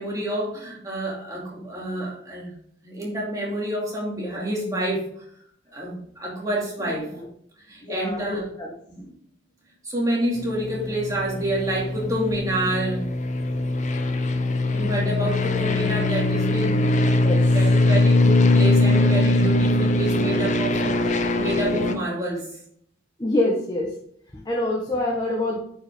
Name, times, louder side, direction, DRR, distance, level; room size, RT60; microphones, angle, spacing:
voice 1, 0.0-2.5 2.8-5.0 5.7-7.1 7.7-8.5 9.0-9.1 9.8-13.1 14.7-16.9 17.5-22.5, right 1 dB, 20° right, -4 dB, 2.6 m, -28 dB
voice 2, 6.8-7.3 7.8-8.7 14.8-15.0 17.2-17.4 23.2-23.9 24.3-25.6, left 1 dB, 20° left, -2 dB, 1.2 m, -26 dB
sound 1, 10.4-21.9, left 2 dB, 40° left, 0.6 m, -21 dB
9.2 x 5.7 x 3.5 m, 0.67 s
head